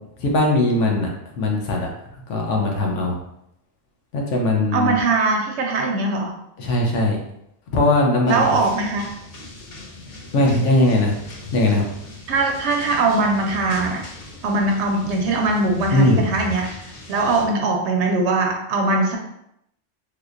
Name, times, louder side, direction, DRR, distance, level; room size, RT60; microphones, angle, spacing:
voice 1, 0.2-1.1 1.3-1.9 2.3-3.1 4.1-5.0 6.6-7.2 7.7-8.4 10.3-11.2 11.5-11.8 15.9-16.2, left 2 dB, 70° left, 0 dB, 1.0 m, -19 dB
voice 2, 4.7-6.3 8.3-9.1 12.3-14.1 14.4-19.2, right 3 dB, 70° right, 2 dB, 0.8 m, -21 dB
sound 1, 8.3-17.5, left 2 dB, 50° left, 0.6 m, -39 dB
3.4 x 2.8 x 2.4 m, 0.79 s
omnidirectional pair, 1.3 m